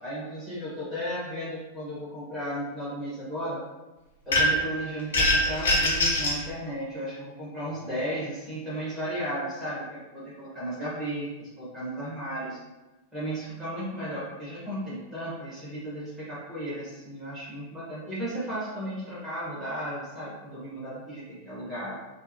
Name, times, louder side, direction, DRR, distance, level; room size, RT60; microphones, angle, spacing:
voice 1, 0.0-3.6 4.2-12.6 13.1-22.0, equal, 5° right, -12 dB, 1.4 m, -34 dB
sound 1, 4.3-4.7 5.1-6.4, left 1 dB, 65° left, 0.7 m, -22 dB
3.7 x 2.0 x 2.8 m, 1.1 s
figure-of-eight pair, 90°, 0 cm